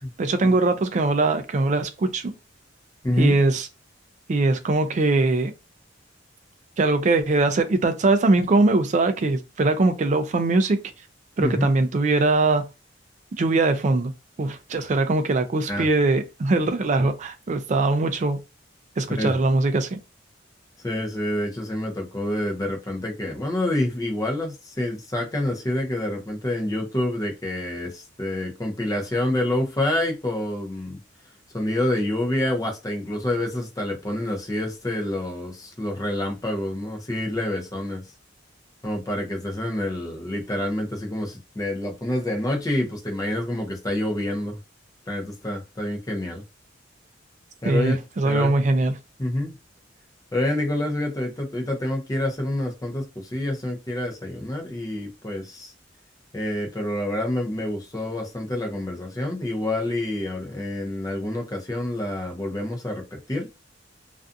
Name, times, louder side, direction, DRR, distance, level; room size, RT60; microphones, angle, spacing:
voice 1, 0.2-2.3 3.2-3.7 4.3-5.5 6.8-10.8 11.4-12.7 13.4-14.1 14.4-18.4 19.0-20.0 47.6-48.9, right 2 dB, 40° right, 0.3 m, -21 dB
voice 2, 3.0-3.4 11.4-11.6 15.7-15.9 19.1-19.3 20.8-31.0 31.5-38.0 38.8-44.6 45.1-46.4 47.6-48.0 48.2-48.5 49.2-49.5 50.3-55.7 56.3-63.5, left 1 dB, 20° left, 0.6 m, -27 dB
2.5 x 2.3 x 2.5 m
head